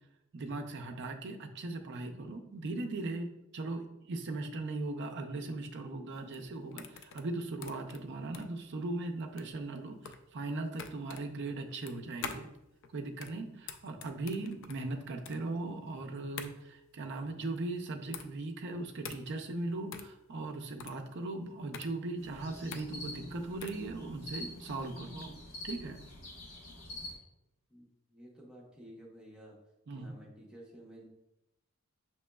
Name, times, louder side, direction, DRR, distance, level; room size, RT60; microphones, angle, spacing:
voice 1, 0.3-12.5 12.9-25.4 25.6-26.0 29.9-30.1, right 2 dB, 50° right, 4 dB, 0.4 m, -39 dB
sound 1, 6.1-23.9, left 6 dB, 55° left, 0.3 m, -47 dB
sound 2, 22.2-27.1, left 1 dB, 75° left, 1.3 m, -45 dB
voice 2, 27.7-29.6 29.9-31.0, right 1 dB, 5° right, -3 dB, 0.8 m, -53 dB
6.2 x 3.0 x 2.2 m, 0.90 s
head